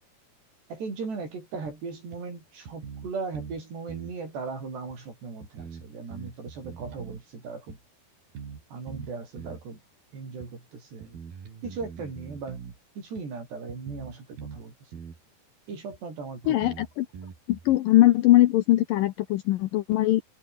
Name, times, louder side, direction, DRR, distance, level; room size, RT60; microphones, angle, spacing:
voice 1, 0.7-7.8 8.7-9.8 10.1-11.2 11.6-12.6 13.0-14.7 15.7-16.6, right 4 dB, 75° right, 10.0 m, -38 dB
sound 1, 1.6-1.7 2.1-2.2 2.7-3.6 3.9-4.2 4.9-5.0 5.4-7.2 7.7-7.8 8.3-8.6 8.9-9.7 10.4-10.5 11.0-12.8 13.1-13.2 13.7-14.6 14.9-15.2 15.9-16.0 16.4-17.8, right 6 dB, 60° right, 5.7 m, -42 dB
voice 2, 16.5-17.1 17.5-20.2, left 16 dB, 75° left, 2.1 m, -21 dB
omnidirectional pair, 4.8 m